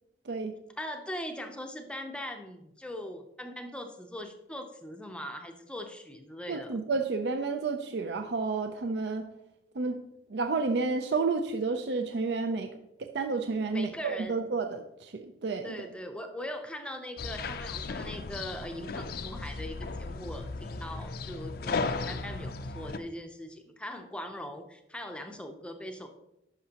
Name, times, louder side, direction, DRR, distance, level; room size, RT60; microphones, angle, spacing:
voice 1, 0.2-0.6 6.5-9.3 9.7-10.0 10.3-15.9, right 4 dB, 65° right, 7 dB, 0.5 m, -31 dB
voice 2, 0.8-6.7 13.7-14.4 15.6-26.1, equal, 5° left, 5 dB, 0.5 m, -41 dB
sound 1, 17.2-23.0, left 3 dB, 55° left, 0.4 m, -36 dB
10.5 x 5.9 x 2.9 m, 0.85 s
head